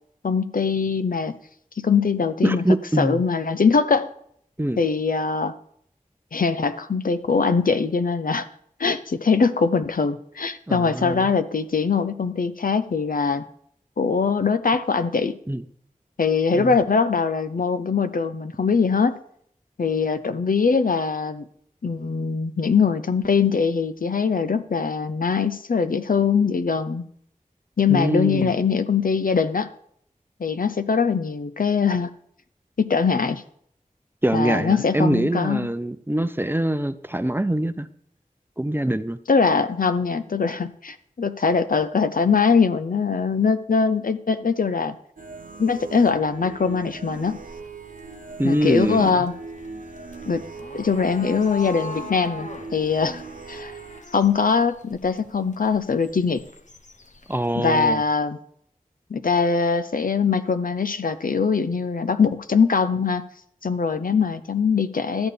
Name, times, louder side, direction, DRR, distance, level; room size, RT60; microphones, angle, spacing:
voice 1, 0.2-1.4 1.8-2.6 3.0-4.1 4.8-5.5 6.3-8.5 8.8-13.4 14.0-15.4 16.2-19.2 19.8-21.4 21.8-27.0 27.8-29.7 30.4-32.1 32.8-33.4 34.3-35.7 39.3-45.0 45.6-47.4 48.4-49.3 50.3-50.4 50.7-53.2 53.5-53.7 54.1-56.4 57.6-58.4 59.1-63.2 63.6-65.3, left 5 dB, 80° left, 11 dB, 0.6 m, -22 dB
voice 2, 2.4-3.2 4.6-4.8 10.7-11.3 15.5-15.6 16.5-16.8 27.9-28.5 34.2-37.9 38.6-39.2 48.4-49.3 57.3-58.0, right 1 dB, 15° right, 12 dB, 0.5 m, -24 dB
sound 1, 45.2-54.0, right 4 dB, 75° right, 0.9 m, -40 dB
sound 2, 47.1-57.6, left 2 dB, 60° left, 0.9 m, -41 dB
13.0 x 8.9 x 3.4 m, 0.68 s
wide cardioid pair, 50°, 14 cm